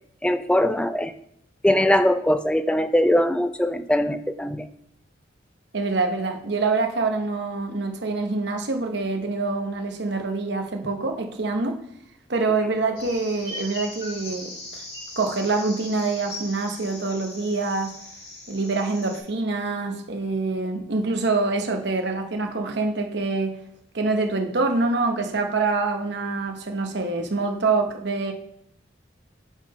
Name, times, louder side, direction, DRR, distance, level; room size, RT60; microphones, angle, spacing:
voice 1, 0.2-1.1 1.6-4.7, left 1 dB, 5° left, 10 dB, 0.3 m, -21 dB
voice 2, 5.7-11.8 12.3-14.8 15.2-17.9 18.5-23.6 23.9-28.3, right 3 dB, 65° right, 4 dB, 0.9 m, -25 dB
sound 1, 13.0-19.2, left 2 dB, 55° left, 2.5 m, -39 dB
7.1 x 3.8 x 5.1 m, 0.72 s
head